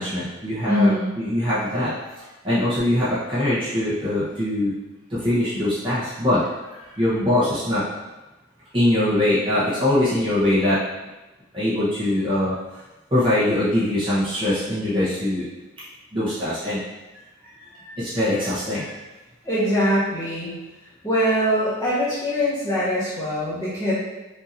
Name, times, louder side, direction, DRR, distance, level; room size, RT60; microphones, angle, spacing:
voice 1, 0.0-1.9 2.4-4.7 5.1-6.4 7.0-7.8 8.7-10.8 11.5-12.5 13.1-15.5 16.1-16.8 17.4-18.9, left 1 dB, 25° right, -10 dB, 0.9 m, -22 dB
voice 2, 0.7-1.1 19.4-20.6 21.0-23.9, equal, 15° left, -10 dB, 1.5 m, -22 dB
5.5 x 2.8 x 2.6 m, 1.1 s
head